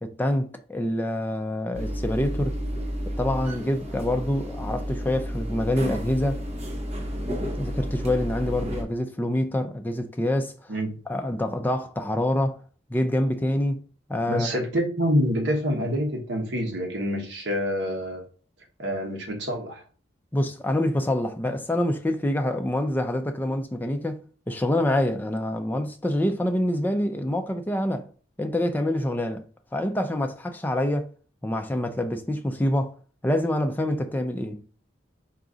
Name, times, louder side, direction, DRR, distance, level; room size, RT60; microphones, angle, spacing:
voice 1, 0.0-2.6 3.2-6.4 7.6-10.7 11.1-12.6 12.9-13.8 14.1-14.5 20.3-28.1 28.4-29.4 29.7-31.1 31.4-33.0 33.2-34.6, left 1 dB, 10° left, 0.3 m, -26 dB
sound 1, 1.7-8.8, equal, 35° right, 0.7 m, -31 dB
voice 2, 14.3-18.3 18.8-19.8, equal, 70° right, 1.0 m, -26 dB
4.9 x 2.4 x 3.8 m
head